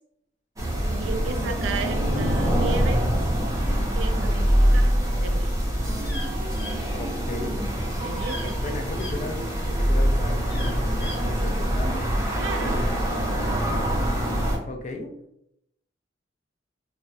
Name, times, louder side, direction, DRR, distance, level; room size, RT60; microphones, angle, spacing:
sound 1, 0.6-14.6, equal, 20° right, 0.6 m, -24 dB
voice 1, 1.0-3.1 3.9-5.5 8.0-9.0 12.4-12.8, right 4 dB, 85° right, 7 dB, 0.3 m, -34 dB
voice 2, 4.1-4.5 6.9-7.6 8.6-11.9 12.6-12.8 14.7-15.1, left 2 dB, 40° left, 4 dB, 0.4 m, -35 dB
sound 2, 6.0-9.2 9.7-11.3, left 1 dB, 65° left, 0.9 m, -40 dB
2.7 x 2.0 x 2.2 m, 0.77 s
head